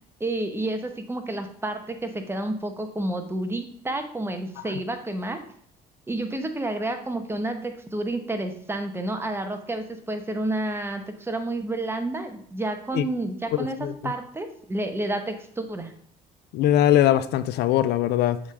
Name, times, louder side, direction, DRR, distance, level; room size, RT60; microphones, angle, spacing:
voice 1, 0.2-5.4 6.1-13.8 14.0-15.9, right 2 dB, 15° right, 6 dB, 1.0 m, -30 dB
voice 2, 13.5-13.9 16.5-18.4, left 12 dB, 75° left, 14 dB, 0.5 m, -21 dB
7.2 x 3.7 x 4.8 m, 0.62 s
cardioid pair, 110°, 17 cm